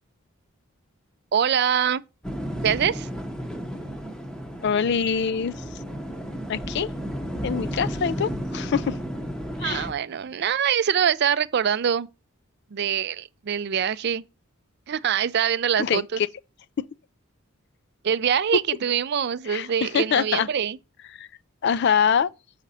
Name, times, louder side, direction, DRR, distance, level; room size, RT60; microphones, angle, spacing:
voice 1, 1.3-2.0 2.6-3.1 9.6-12.1 12.7-14.2 14.9-16.2 18.0-20.8, right 8 dB, 50° right, 0.4 m, -24 dB
sound 1, 2.2-9.9, equal, 5° left, 0.8 m, -33 dB
voice 2, 4.6-5.5 6.5-6.9 7.4-9.0 9.6-9.9 15.8-16.3 19.5-20.5 21.2-21.3 21.6-22.3, left 7 dB, 50° left, 0.4 m, -24 dB
7.2 x 5.0 x 4.1 m
head